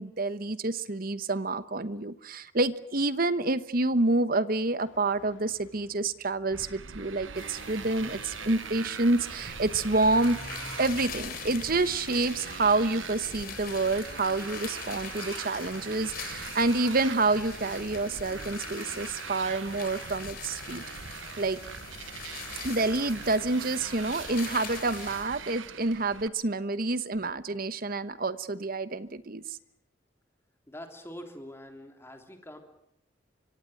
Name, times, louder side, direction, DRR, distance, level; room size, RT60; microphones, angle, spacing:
voice 1, 0.0-10.4 10.8-20.8 21.4-21.6 22.6-29.6, right 2 dB, 50° right, 14 dB, 1.1 m, -28 dB
sound 1, 4.8-15.8, left 1 dB, 70° left, 3.4 m, -53 dB
Motorcycle, 6.5-26.3, right 6 dB, 85° right, 1.0 m, -42 dB
sound 2, 7.3-25.2, left 6 dB, 50° left, 3.9 m, -43 dB
voice 2, 30.7-32.6, equal, 15° left, 4 dB, 3.3 m, -44 dB
24.5 x 24.5 x 7.8 m, 0.80 s
head